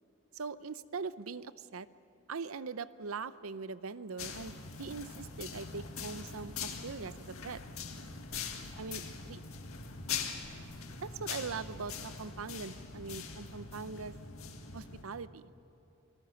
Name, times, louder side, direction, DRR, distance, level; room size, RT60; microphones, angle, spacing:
voice 1, 0.3-1.9 2.3-7.6 8.8-9.4 10.5-10.7 11.0-14.1 14.7-15.5, right 4 dB, 85° right, 15 dB, 0.7 m, -42 dB
sound 1, 4.2-15.0, left 5 dB, 90° left, 2.0 m, -42 dB
27.0 x 18.5 x 7.0 m, 2.9 s
head